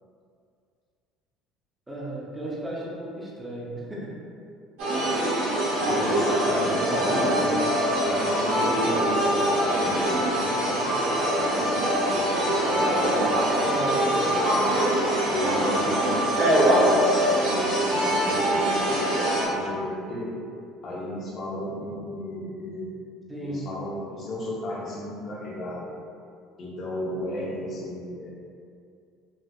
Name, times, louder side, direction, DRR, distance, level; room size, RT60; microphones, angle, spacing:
voice 1, 1.9-4.1 6.4-7.6 13.6-14.1 23.3-23.7, right 1 dB, 5° right, -6 dB, 0.6 m, -36 dB
sound 1, 4.8-19.4, right 1 dB, 80° right, 1.0 m, -23 dB
voice 2, 5.8-7.6 8.1-11.0 11.3-14.9 15.3-19.2 19.4-20.4 20.8-22.9 23.4-26.0 26.6-28.3, left 1 dB, 35° left, -4 dB, 0.6 m, -34 dB
4.0 x 2.4 x 2.3 m, 2.4 s
cardioid pair, 165°, 0 cm